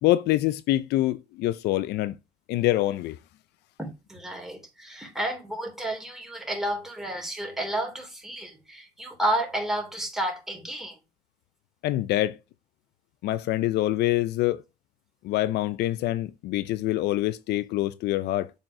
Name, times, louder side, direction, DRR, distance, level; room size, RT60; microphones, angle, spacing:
voice 1, 0.0-2.2 2.5-3.2 11.8-12.4 13.2-14.6 15.2-18.5, left 15 dB, 80° left, 0.5 m, -25 dB
voice 2, 3.8-11.0, right 1 dB, ahead, 3.3 m, -31 dB
7.3 x 5.5 x 4.8 m
cardioid pair, 110°, 17 cm